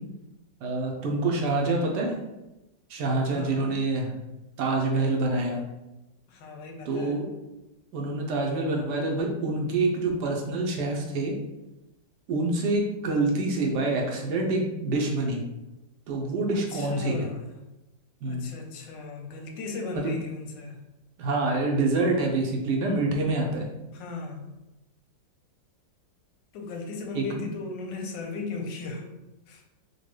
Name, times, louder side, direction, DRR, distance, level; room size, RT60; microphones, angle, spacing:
voice 1, 0.6-2.1 2.9-4.1 4.6-5.6 6.8-7.3 7.9-11.3 12.3-15.4 16.1-17.2 18.2-18.5 19.9-20.2 21.2-23.7 27.1-27.4, right 2 dB, 75° right, 0 dB, 1.2 m, -26 dB
voice 2, 3.3-3.8 6.3-7.2 16.5-17.5 18.3-20.8 23.9-24.5 26.5-29.1 29.5-29.6, left 3 dB, 85° left, 2 dB, 1.3 m, -37 dB
4.1 x 2.2 x 3.1 m, 0.99 s
omnidirectional pair, 1.9 m